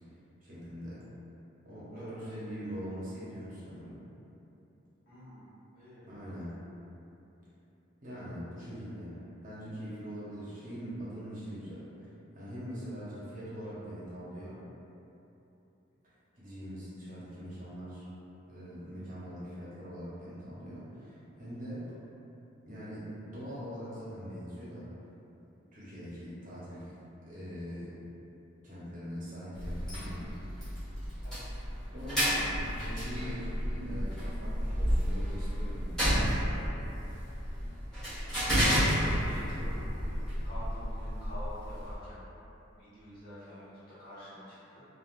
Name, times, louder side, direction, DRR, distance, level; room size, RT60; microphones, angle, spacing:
voice 1, 0.4-1.0 1.6-4.0 6.0-6.6 8.0-9.2 9.4-14.6 16.0-18.1 18.5-21.9 22.6-24.9 25.7-27.0 27.2-28.0 28.6-30.3 31.9-32.5 32.8-36.4, equal, 40° right, -10 dB, 0.8 m, -42 dB
voice 2, 1.9-2.4 5.0-5.4 5.7-6.1 31.2-31.7 38.8-42.2 42.8-44.8, equal, 45° left, -13 dB, 1.3 m, -47 dB
sound 1, 29.5-42.0, equal, ahead, 1.3 m, -31 dB
3.4 x 2.4 x 2.4 m, 3.0 s
head